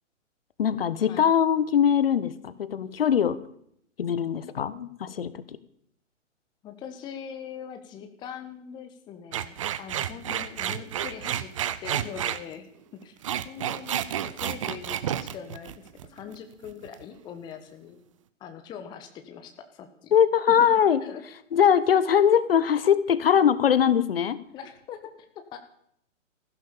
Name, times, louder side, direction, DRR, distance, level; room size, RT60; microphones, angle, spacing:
voice 1, 0.6-3.4 4.0-5.3 20.1-21.0 21.5-24.4, left 8 dB, 45° left, 15 dB, 1.2 m, -21 dB
voice 2, 6.6-11.5 11.8-12.7 12.9-13.2 13.4-18.0 18.4-20.1 20.5-20.6 21.0-21.2 24.5-25.1 25.5-25.6, left 8 dB, 10° left, 7 dB, 1.0 m, -42 dB
sound 1, 9.3-12.4 13.0-16.3 16.6-17.0, right 10 dB, 25° right, 0.6 m, -30 dB
15.5 x 12.0 x 7.2 m, 0.69 s
figure-of-eight pair, 125°, 38 cm